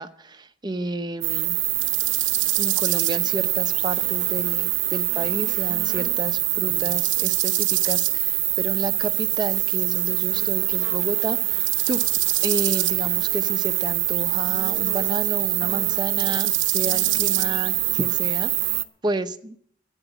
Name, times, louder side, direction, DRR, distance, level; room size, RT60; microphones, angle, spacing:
voice 1, 0.0-1.6 2.6-12.0 12.4-19.6, right 2 dB, 20° right, 9 dB, 0.8 m, -31 dB
sound 1, 1.2-18.8, right 16 dB, 70° right, 0.8 m, -23 dB
13.0 x 9.1 x 9.1 m, 0.62 s
head